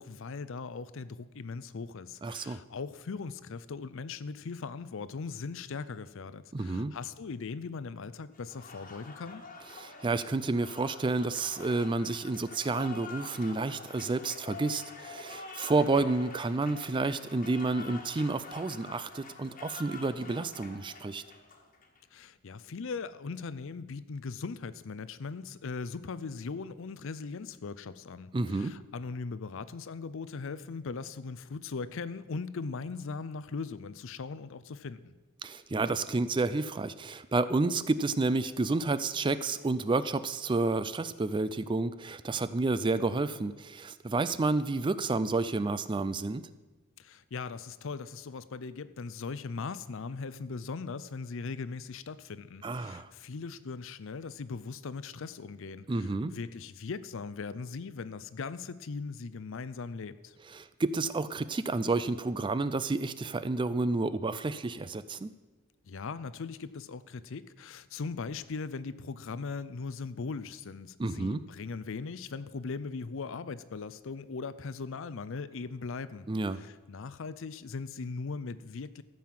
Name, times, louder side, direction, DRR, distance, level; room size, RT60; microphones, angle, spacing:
voice 1, 0.0-9.4 22.1-35.1 47.0-60.4 65.8-76.3 76.5-79.0, left 4 dB, 65° left, 15 dB, 0.5 m, -39 dB
voice 2, 2.2-2.6 6.5-6.9 9.8-21.2 28.3-28.7 35.4-46.4 52.6-53.1 55.9-56.3 60.5-65.3 71.0-71.4 76.3-76.6, right 3 dB, 25° right, 14 dB, 0.4 m, -30 dB
Applause, 8.3-22.0, left 4 dB, 40° left, 1.5 m, -47 dB
14.5 x 5.6 x 7.5 m, 1.2 s
head